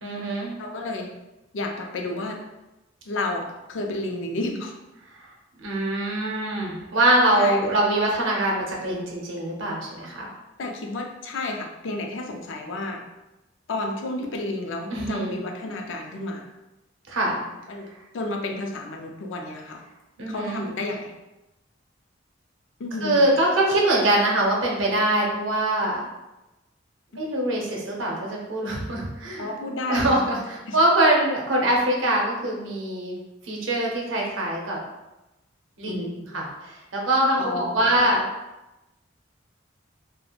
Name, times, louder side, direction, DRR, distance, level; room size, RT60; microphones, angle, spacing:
voice 1, 0.0-0.5 5.1-5.3 5.6-10.3 14.9-15.4 17.1-17.4 20.2-20.6 23.0-26.0 27.2-29.5 29.9-33.1 33.4-34.8 35.8-36.1 36.3-38.2, right 1 dB, 80° right, -2 dB, 0.7 m, -23 dB
voice 2, 0.6-1.1 1.5-2.4 3.1-4.7 7.3-7.6 10.6-13.0 13.7-16.5 17.7-17.9 18.1-19.8 20.3-21.1 22.8-23.3 29.4-30.3 30.7-30.8 35.8-36.1 37.4-37.9, left 2 dB, 70° left, 2 dB, 0.4 m, -31 dB
2.9 x 2.1 x 2.3 m, 0.99 s
head